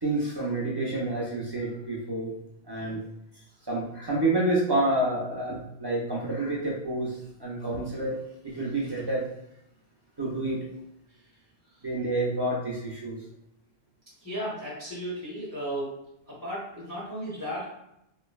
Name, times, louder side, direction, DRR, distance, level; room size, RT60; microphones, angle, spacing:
voice 1, 0.0-2.3 2.7-3.0 3.6-9.3 10.2-10.6 11.8-13.2, right 2 dB, 35° right, -5 dB, 0.4 m, -29 dB
voice 2, 14.2-15.9 16.3-17.7, equal, 25° left, -7 dB, 0.6 m, -35 dB
3.1 x 2.1 x 2.3 m, 0.81 s
omnidirectional pair, 1.1 m